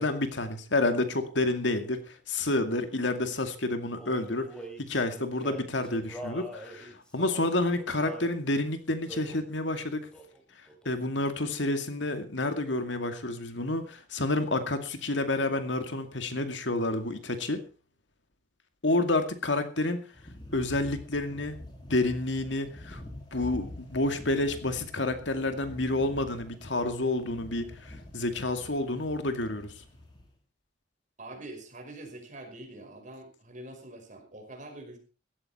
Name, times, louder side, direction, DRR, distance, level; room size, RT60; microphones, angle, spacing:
voice 1, 0.0-4.5 4.8-10.0 10.9-17.6 18.8-20.1 20.5-21.6 21.9-23.0 23.3-29.8, left 2 dB, 75° left, 8 dB, 2.3 m, -29 dB
Male singing, 3.9-8.3 9.1-9.5 10.1-10.4 10.7-11.6, right 1 dB, 5° left, 3.8 m, -44 dB
sound 1, 20.1-30.3, left 1 dB, 25° left, 4.8 m, -46 dB
voice 2, 31.2-35.0, right 1 dB, 40° right, 3 dB, 5.5 m, -45 dB
16.5 x 14.0 x 4.3 m, 0.34 s
head